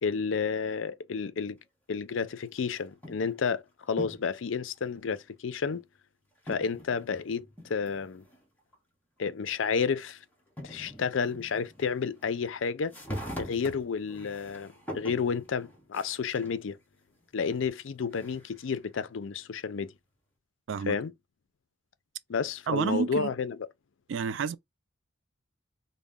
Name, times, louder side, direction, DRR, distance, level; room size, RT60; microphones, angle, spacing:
voice 1, 0.0-1.6 1.9-5.8 6.5-8.2 9.2-10.2 10.6-12.9 13.4-16.8 17.3-19.9 20.9-21.1 22.3-23.6, left 5 dB, 75° left, 0.5 m, -31 dB
sound 1, 2.6-3.4 3.9-4.4 5.1-5.2 6.5-8.4 8.7-8.8 10.1-10.2 10.6-12.5 12.8-16.6 17.1-18.7, equal, 10° left, 1.1 m, -43 dB
voice 2, 22.7-23.3 24.1-24.6, right 6 dB, 70° right, 0.3 m, -29 dB
3.9 x 2.1 x 3.5 m
head